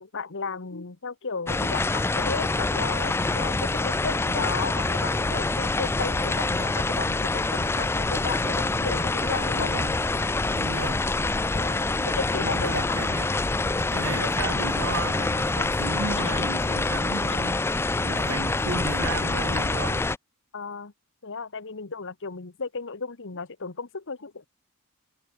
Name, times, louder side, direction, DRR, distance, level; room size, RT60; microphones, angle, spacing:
voice 1, 0.0-9.7 11.5-13.0 17.3-17.4 20.5-20.9 21.2-24.5, left 4 dB, 60° left, 1.2 m, -34 dB
sound 1, 1.5-20.2, left 3 dB, 10° left, 0.3 m, -26 dB
voice 2, 9.5-10.0 10.5-11.1 12.3-13.3 13.9-17.6 18.0-20.1, right 3 dB, 65° right, 1.8 m, -34 dB
head